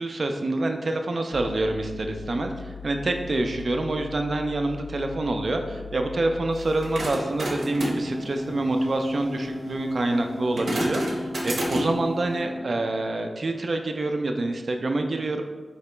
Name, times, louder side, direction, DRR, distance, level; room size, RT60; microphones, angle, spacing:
voice 1, 0.0-15.4, right 2 dB, 55° right, 4 dB, 0.4 m, -27 dB
sound 1, 1.3-7.1, left 7 dB, 60° left, 0.5 m, -40 dB
sound 2, 6.6-12.1, equal, 80° right, 0.8 m, -31 dB
sound 3, 7.6-12.6, left 1 dB, 5° left, 0.4 m, -35 dB
4.5 x 2.9 x 3.2 m, 1.3 s
wide cardioid pair, 110°, 0 cm